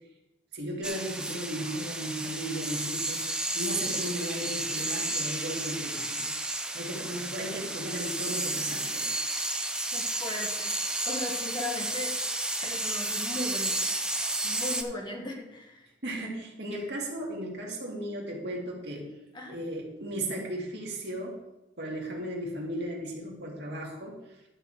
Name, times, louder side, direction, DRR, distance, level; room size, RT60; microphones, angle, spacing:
voice 1, 0.5-3.2 3.5-6.3 6.7-9.1 16.0-19.1 19.5-21.4 21.8-24.2, right 1 dB, 70° right, -2 dB, 2.4 m, -35 dB
sound 1, 0.8-14.8, right 2 dB, 5° right, 0.5 m, -32 dB
voice 2, 9.9-10.7 11.1-12.1 12.6-13.9 14.4-15.9 19.3-19.6, left 2 dB, 25° left, 0 dB, 1.5 m, -37 dB
11.5 x 4.3 x 6.5 m, 0.95 s
head